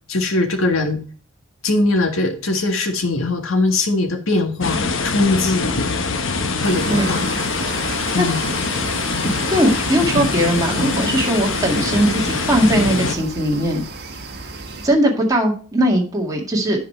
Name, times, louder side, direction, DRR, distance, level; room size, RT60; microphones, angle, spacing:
voice 1, 0.1-1.0 1.6-4.8 5.0-5.7 6.6-7.2 8.1-8.4, left 2 dB, 85° left, 5 dB, 1.6 m, -20 dB
sound 1, 4.6-13.2, left 4 dB, 70° left, 1.0 m, -23 dB
sound 2, 6.6-14.9, right 3 dB, 55° right, 1.3 m, -32 dB
voice 2, 9.5-13.8 14.8-16.9, right 1 dB, 20° right, -1 dB, 2.0 m, -19 dB
10.0 x 5.0 x 4.4 m, 0.40 s
head